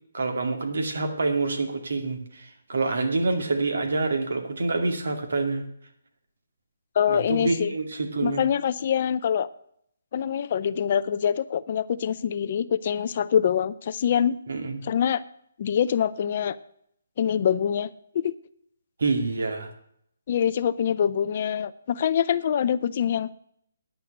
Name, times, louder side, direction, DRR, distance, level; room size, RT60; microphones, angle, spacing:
voice 1, 0.1-5.6 7.1-8.4 14.5-14.8 19.0-19.7, right 3 dB, 70° right, 5 dB, 2.4 m, -27 dB
voice 2, 7.0-7.7 8.2-9.5 10.1-14.4 14.8-15.2 15.6-16.6 17.2-17.9 18.1-18.3 20.3-23.3, left 8 dB, 35° left, 15 dB, 0.4 m, -24 dB
10.0 x 6.9 x 7.8 m, 0.68 s
hypercardioid pair, 170°, 0 cm